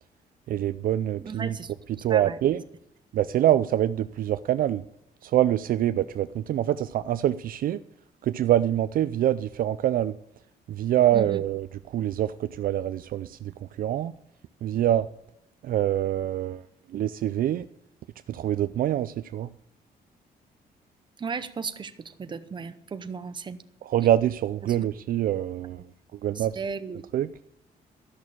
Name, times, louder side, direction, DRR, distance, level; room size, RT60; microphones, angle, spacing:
voice 1, 0.5-1.6 1.9-2.6 3.1-4.8 5.2-7.8 8.2-10.2 10.7-14.2 14.6-15.1 15.6-17.7 18.3-19.5 23.8-26.6 27.1-27.3, right 12 dB, 60° right, 12 dB, 0.4 m, -25 dB
voice 2, 1.2-1.7 2.1-2.3 11.1-11.4 21.2-23.6 26.6-27.0, right 5 dB, 30° right, 11 dB, 0.8 m, -35 dB
13.5 x 6.3 x 8.6 m, 0.79 s
cardioid pair, 140°, 16 cm